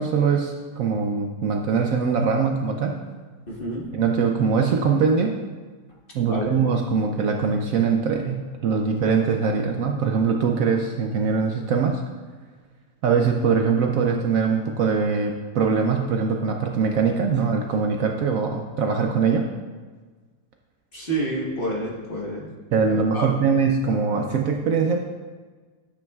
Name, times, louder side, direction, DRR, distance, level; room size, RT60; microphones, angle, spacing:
voice 1, 0.0-3.0 3.9-5.4 6.1-12.0 13.0-19.5 22.7-25.0, right 5 dB, 65° right, 3 dB, 0.9 m, -22 dB
voice 2, 3.5-3.8 6.3-6.6 20.9-22.5 22.8-23.3, right 1 dB, 35° left, -3 dB, 1.3 m, -29 dB
10.0 x 8.6 x 2.3 m, 1.4 s
omnidirectional pair, 1.7 m